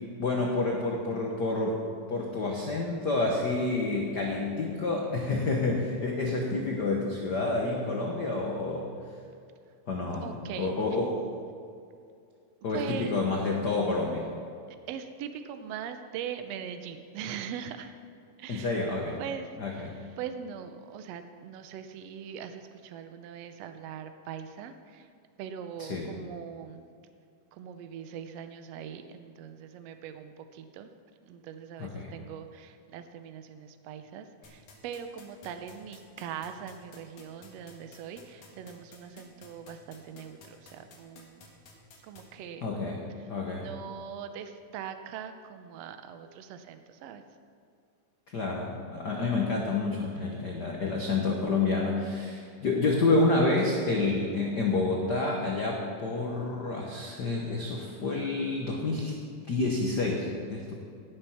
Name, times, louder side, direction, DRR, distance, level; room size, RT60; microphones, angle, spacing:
voice 1, 0.2-1.8 2.1-8.9 9.9-10.3 10.6-11.1 12.6-14.3 18.5-19.2 19.6-20.0 25.8-26.1 31.8-32.1 42.6-43.0 43.2-43.7 48.3-59.2 59.5-60.7, left 3 dB, 85° left, -1 dB, 0.9 m, -29 dB
voice 2, 10.2-10.7 12.7-13.2 14.9-17.9 18.4-18.7 19.2-25.1 25.4-26.9 27.5-30.9 31.3-41.5 42.0-42.7 43.5-47.2 52.4-52.6, right 8 dB, 75° right, 8 dB, 1.6 m, -41 dB
sound 1, 34.4-42.2, left 4 dB, 65° left, 3.0 m, -52 dB
17.5 x 6.9 x 5.7 m, 2.4 s
omnidirectional pair, 3.7 m